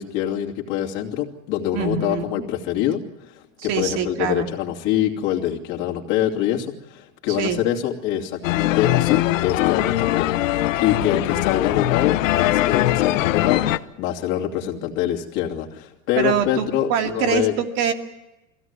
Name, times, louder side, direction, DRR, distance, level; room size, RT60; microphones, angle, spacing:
voice 1, 0.0-17.6, left 11 dB, 45° left, 0 dB, 2.9 m, -25 dB
voice 2, 1.7-2.5 3.6-4.5 7.3-7.6 16.2-17.9, right 8 dB, 45° right, 4 dB, 2.3 m, -24 dB
sound 1, 8.4-13.8, left 15 dB, 80° left, 0.9 m, -21 dB
22.5 x 16.5 x 9.6 m, 0.99 s
supercardioid pair, 155°, 39 cm